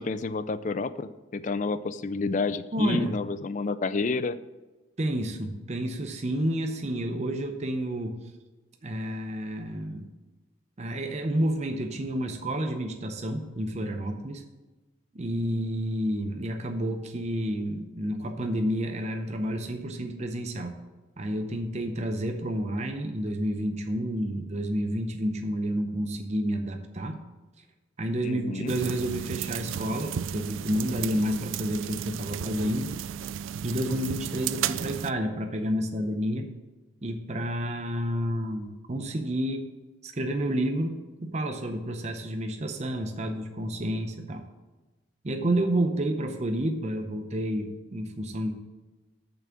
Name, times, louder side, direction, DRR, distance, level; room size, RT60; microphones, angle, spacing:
voice 1, 0.0-4.4 28.2-28.7, left 3 dB, 35° left, 14 dB, 0.3 m, -30 dB
voice 2, 2.7-3.2 5.0-8.2 8.8-10.1 10.8-14.4 15.1-20.7 21.2-27.2 28.0-32.9 33.6-36.5 37.0-39.7 40.0-44.4 45.2-48.5, right 1 dB, 35° right, 5 dB, 0.6 m, -30 dB
sound 1, 28.7-35.1, right 9 dB, 70° right, 0.3 m, -34 dB
7.1 x 5.9 x 7.0 m, 1.2 s
head